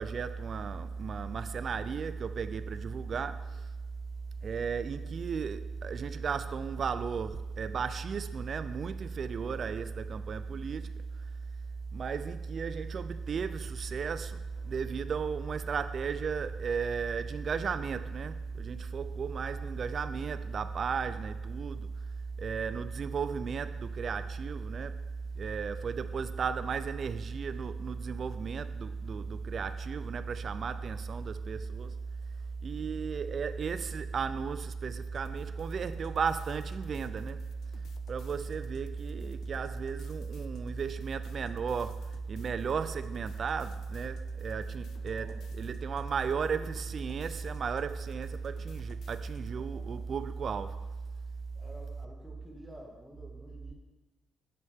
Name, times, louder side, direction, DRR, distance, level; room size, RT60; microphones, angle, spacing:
voice 1, 0.0-3.6 4.4-10.9 11.9-21.9 22.4-25.0 25.4-31.9 32.6-37.4 38.1-50.8, right 5 dB, 50° right, 0.4 m, -34 dB
sound 1, 13.3-20.7, right 1 dB, 40° left, 1.3 m, -56 dB
sound 2, 35.1-49.6, left 8 dB, 70° left, 0.5 m, -55 dB
voice 2, 45.0-45.4 46.2-46.7 49.5-50.1 51.5-53.7, right 1 dB, 10° right, 1.8 m, -51 dB
8.8 x 6.3 x 3.6 m
cardioid pair, 90°, 0 cm